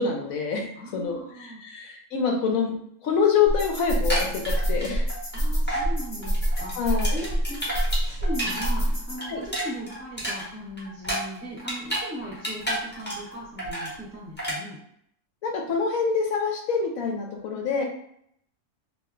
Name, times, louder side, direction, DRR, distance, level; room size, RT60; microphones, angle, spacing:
voice 1, 0.0-0.6 0.9-1.2 1.6-2.7 3.0-5.1 6.7-7.2 9.3-9.4 15.4-17.8, left 5 dB, 70° left, 1 dB, 1.0 m, -25 dB
voice 2, 0.7-1.6 5.3-7.9 8.2-14.8, equal, 45° right, -5 dB, 1.0 m, -38 dB
sound 1, 3.5-9.2, right 1 dB, 40° left, 1.0 m, -26 dB
sound 2, 3.9-5.4 5.7-5.9 6.2-8.7 9.0-12.1 12.3-13.3 13.6-13.9 14.4-14.6, right 1 dB, 10° left, 0.7 m, -31 dB
2.7 x 2.1 x 3.6 m, 0.71 s
omnidirectional pair, 1.6 m